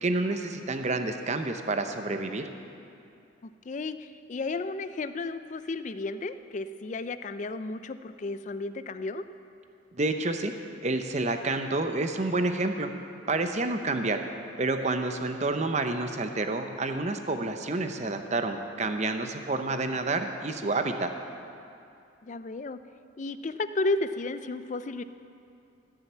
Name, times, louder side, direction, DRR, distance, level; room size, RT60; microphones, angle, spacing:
voice 1, 0.0-2.4 10.0-10.5 10.8-12.9 13.3-14.2 14.6-21.1, right 2 dB, 35° right, 7 dB, 0.7 m, -29 dB
voice 2, 3.4-9.2 22.2-22.8 23.2-25.0, left 3 dB, 35° left, 12 dB, 0.4 m, -33 dB
15.5 x 6.5 x 7.3 m, 2.6 s
head